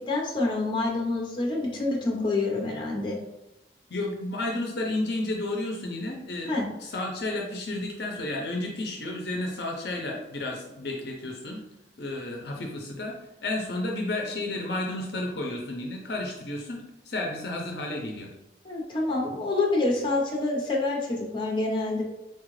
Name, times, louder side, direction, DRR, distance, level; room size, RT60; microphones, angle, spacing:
voice 1, 0.1-3.2 6.5-6.7 18.6-22.0, left 2 dB, 30° left, -1 dB, 0.8 m, -27 dB
voice 2, 3.9-6.5 6.8-11.6 12.0-18.3, left 2 dB, 65° left, 1 dB, 0.6 m, -32 dB
4.4 x 2.4 x 3.1 m, 0.94 s
head